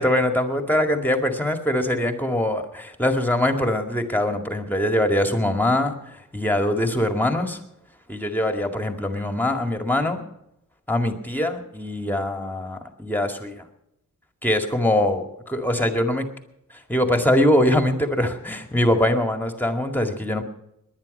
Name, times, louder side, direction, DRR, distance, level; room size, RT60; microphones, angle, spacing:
voice 1, 0.0-7.6 8.1-10.2 10.9-13.6 14.4-16.3 16.9-20.4, left 1 dB, 5° left, 5 dB, 2.0 m, -23 dB
19.0 x 11.0 x 5.4 m, 0.83 s
wide cardioid pair, 90°, 31 cm